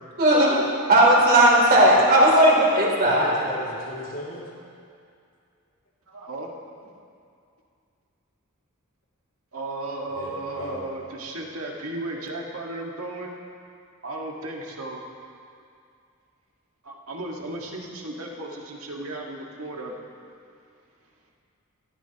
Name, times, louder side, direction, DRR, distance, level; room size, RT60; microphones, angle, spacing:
voice 1, 0.2-0.6 0.9-3.3, right 1 dB, 45° right, -4 dB, 3.3 m, -16 dB
voice 2, 1.8-2.2 6.1-6.5 9.5-13.3 14.0-15.0 16.8-20.0, right 2 dB, 80° right, -1 dB, 1.8 m, -35 dB
voice 3, 3.0-4.5 10.1-10.8, left 1 dB, 70° left, -5 dB, 2.6 m, -36 dB
17.5 x 14.5 x 3.0 m, 2.4 s
head